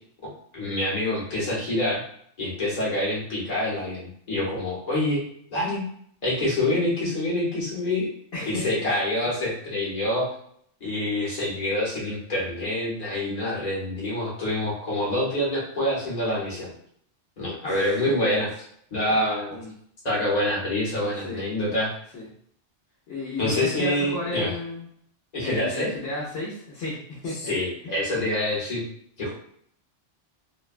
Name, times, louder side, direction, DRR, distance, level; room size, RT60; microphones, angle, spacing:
voice 1, 0.5-2.0 2.4-5.2 5.5-5.8 6.2-8.1 8.4-10.3 10.8-16.7 17.4-18.5 18.9-19.6 20.0-21.9 23.4-24.5 25.3-25.9 27.5-28.8 29.2-29.3, left 1 dB, 40° left, -5 dB, 1.0 m, -26 dB
voice 2, 8.3-8.9 17.6-18.2 19.1-19.2 19.5-19.7 21.2-21.4 22.1-22.3 23.1-24.9 25.4-27.5 27.8-27.9, left 2 dB, 70° left, -5 dB, 0.9 m, -33 dB
2.6 x 2.1 x 2.4 m, 0.65 s
omnidirectional pair, 1.2 m